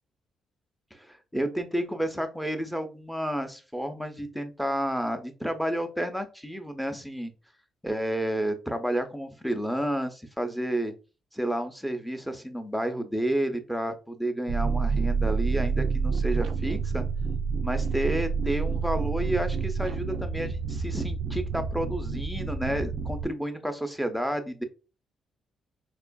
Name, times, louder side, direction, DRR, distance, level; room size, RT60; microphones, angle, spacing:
voice 1, 0.9-7.3 7.8-10.9 11.3-17.0 17.6-24.6, right 1 dB, ahead, 6 dB, 0.6 m, -30 dB
sound 1, 14.5-23.3, right 5 dB, 65° right, 0.3 m, -28 dB
4.3 x 2.4 x 2.3 m, 0.33 s
cardioid pair, 90°, 0 cm